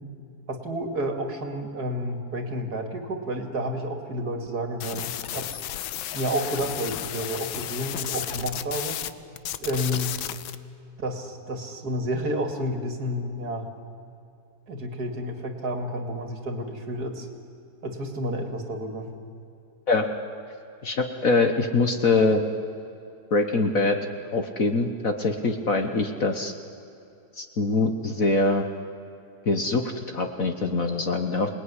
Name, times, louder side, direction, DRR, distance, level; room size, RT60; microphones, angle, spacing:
voice 1, 0.5-5.6 6.1-9.0 9.6-10.2 11.0-13.7 14.7-17.3 17.8-19.1, equal, 50° right, 5 dB, 2.8 m, -30 dB
sound 1, 4.8-9.1 9.4-10.6, left 11 dB, 80° left, 1.6 m, -33 dB
voice 2, 20.8-22.4 23.3-24.0 24.3-26.5 27.4-28.6 29.5-31.5, left 3 dB, 45° left, 6 dB, 1.5 m, -23 dB
27.0 x 19.5 x 9.9 m, 2.7 s
omnidirectional pair, 2.2 m